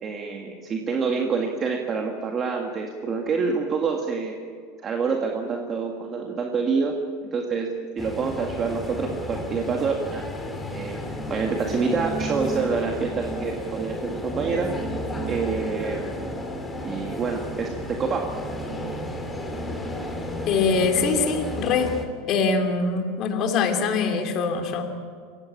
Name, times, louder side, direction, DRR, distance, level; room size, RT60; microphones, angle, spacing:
voice 1, 0.0-4.3 4.8-6.9 7.2-7.7 8.0-10.2 10.7-11.0 11.3-14.7 15.3-16.2 16.8-18.3, right 5 dB, 25° right, 2 dB, 1.9 m, -27 dB
sound 1, 8.0-22.0, equal, 10° left, 2.7 m, -32 dB
voice 2, 20.5-21.9 22.3-24.8, left 4 dB, 35° left, 5 dB, 3.0 m, -23 dB
28.0 x 16.0 x 8.5 m, 2.1 s
supercardioid pair, 160°, 0 cm